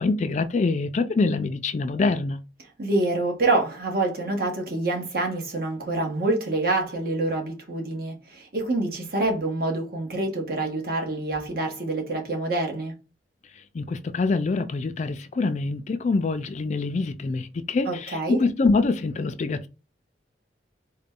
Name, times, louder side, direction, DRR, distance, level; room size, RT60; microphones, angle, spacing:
voice 1, 0.0-2.4 13.7-19.7, left 3 dB, 40° left, 0.3 m, -25 dB
voice 2, 2.8-12.9 17.9-18.4, right 2 dB, 55° right, 1.2 m, -26 dB
3.8 x 2.2 x 3.6 m
head